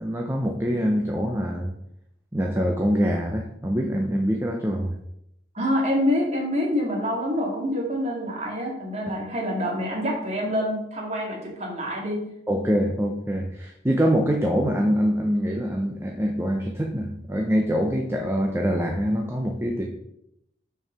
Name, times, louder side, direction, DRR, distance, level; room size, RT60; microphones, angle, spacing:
voice 1, 0.0-1.7 2.3-4.9 12.5-19.9, equal, 15° right, 1 dB, 0.6 m, -24 dB
voice 2, 5.5-12.3, equal, 35° right, -2 dB, 2.1 m, -26 dB
6.4 x 4.7 x 5.8 m, 0.78 s
head